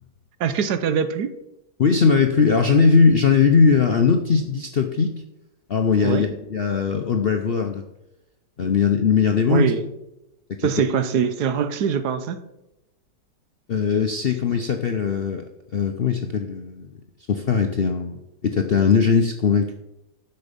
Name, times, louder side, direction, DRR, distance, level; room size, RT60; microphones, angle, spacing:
voice 1, 0.4-1.3 6.0-6.2 9.5-9.8 10.6-12.4, right 7 dB, 70° right, 11 dB, 1.3 m, -23 dB
voice 2, 1.8-5.1 5.7-7.8 8.6-9.7 13.7-15.5 15.7-17.0 17.3-19.7, left 5 dB, 60° left, 5 dB, 0.6 m, -19 dB
10.5 x 6.8 x 5.2 m, 0.91 s
omnidirectional pair, 1.8 m